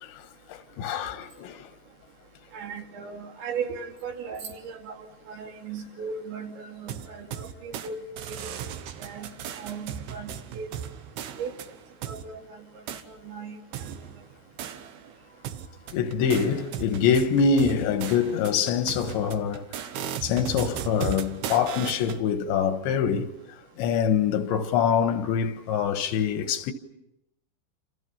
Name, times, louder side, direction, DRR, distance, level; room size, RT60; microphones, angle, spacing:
voice 1, 0.0-1.7 15.9-19.7 20.2-23.3 23.8-26.7, left 7 dB, 90° left, 3.7 m, -25 dB
voice 2, 2.5-4.9 5.3-8.0 8.2-8.5 9.0-9.3 9.6-10.7 11.4-11.5 12.1-12.6 13.1-13.6, right 6 dB, 90° right, 5.0 m, -37 dB
sound 1, 6.9-7.9 8.2-12.2 12.9-13.0 13.7-15.1 15.5-22.2, right 9 dB, 70° right, 3.0 m, -37 dB
29.5 x 28.0 x 5.7 m
omnidirectional pair, 5.0 m